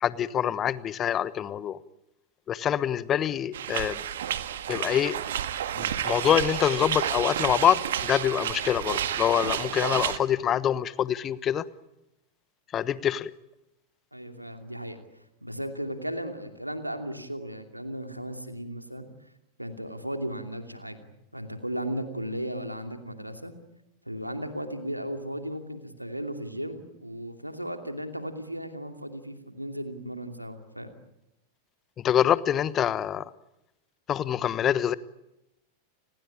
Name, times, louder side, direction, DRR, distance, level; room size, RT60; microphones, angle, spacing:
voice 1, 0.0-1.8 2.5-4.0 4.7-5.2 5.8-11.6 12.7-13.3 32.0-33.2 34.1-34.9, left 9 dB, 30° left, 18 dB, 1.1 m, -25 dB
sound 1, 3.5-10.2, right 10 dB, 60° right, 1.7 m, -30 dB
voice 2, 14.1-15.0 15.4-19.1 19.6-21.1 21.3-23.5 24.1-30.9, equal, 90° right, 6 dB, 2.7 m, -35 dB
30.0 x 20.0 x 8.7 m, 0.90 s
figure-of-eight pair, 90°, 0 cm